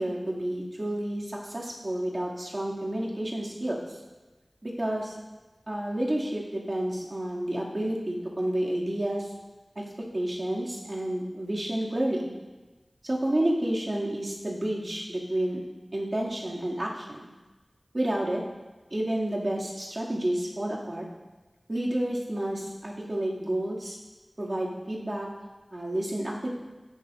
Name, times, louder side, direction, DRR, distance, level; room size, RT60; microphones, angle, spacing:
voice 1, 0.0-3.8 4.6-5.2 5.7-9.3 9.8-9.9 10.1-12.3 13.0-15.6 15.9-17.3 17.9-18.4 18.9-21.1 21.7-24.0 24.4-25.3 25.7-26.5, right 1 dB, 50° right, -5 dB, 2.4 m, -30 dB
16.0 x 9.1 x 2.6 m, 1.2 s
wide cardioid pair, 50°, 0 cm